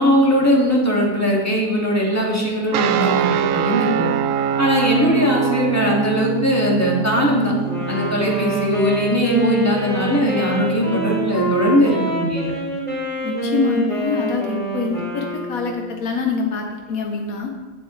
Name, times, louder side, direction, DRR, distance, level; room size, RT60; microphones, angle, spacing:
voice 1, 0.0-4.1 4.6-7.5 7.9-12.5, equal, 10° left, -3 dB, 2.1 m, -19 dB
sound 1, 2.7-11.7, right 8 dB, 75° right, 0.9 m, -25 dB
Wind instrument woodwind instrument, 7.6-15.9, right 1 dB, 25° right, 3.2 m, -25 dB
voice 2, 13.2-17.5, left 4 dB, 80° left, 2 dB, 1.4 m, -25 dB
16.0 x 7.1 x 3.2 m, 1.3 s
omnidirectional pair, 1.5 m